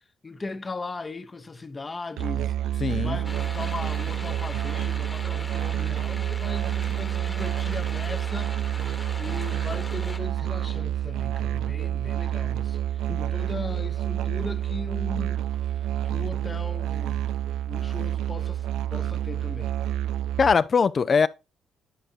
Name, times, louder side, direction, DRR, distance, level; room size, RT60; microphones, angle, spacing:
voice 1, 0.0-17.2 17.7-19.7, left 3 dB, 25° left, 0.8 m, -38 dB
Musical instrument, 2.2-20.5, right 12 dB, 85° right, 0.3 m, -28 dB
voice 2, 2.8-3.2 13.1-13.2 20.4-21.3, left 5 dB, 40° left, 0.4 m, -21 dB
sound 1, 3.2-10.2, left 1 dB, 10° left, 1.2 m, -41 dB
10.0 x 5.0 x 2.7 m
cardioid pair, 90°, 0 cm